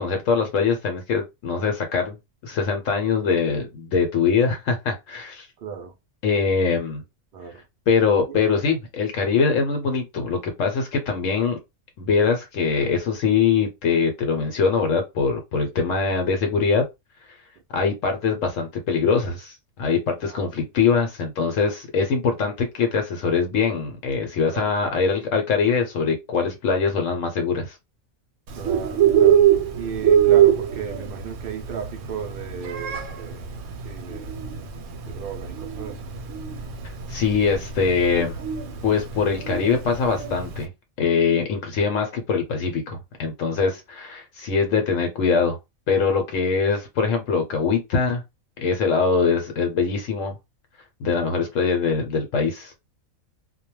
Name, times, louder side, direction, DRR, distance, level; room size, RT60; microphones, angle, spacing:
voice 1, 0.0-2.2 2.4-5.5 6.2-7.0 7.9-11.6 12.0-16.9 17.7-27.8 37.1-38.4 38.8-40.7 41.0-45.6 45.9-48.2 48.6-50.3 51.0-52.7, left 5 dB, 75° left, 0.9 m, -23 dB
voice 2, 5.6-6.0 7.3-7.6 8.3-8.5 20.1-20.7 24.5-24.7 28.5-29.4 29.7-33.5 33.8-34.3 35.0-36.1 38.4-38.8, right 7 dB, 70° right, 0.5 m, -35 dB
Bird, 28.5-40.6, right 10 dB, 90° right, 1.0 m, -22 dB
2.2 x 2.2 x 3.0 m
omnidirectional pair, 1.4 m